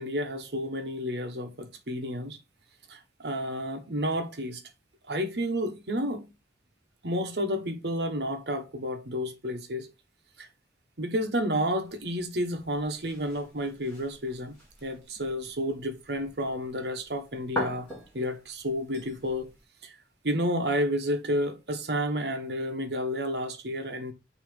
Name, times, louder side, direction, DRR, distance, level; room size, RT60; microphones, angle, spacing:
voice 1, 0.0-2.4 2.9-4.6 5.1-6.3 7.0-9.9 10.4-10.5 11.0-17.9 18.1-19.5 19.8-20.0 20.2-24.1, equal, 65° right, 1.3 m, -31 dB
sound 1, 11.8-19.6, equal, 10° left, 3.1 m, -42 dB
6.3 x 3.2 x 5.4 m
head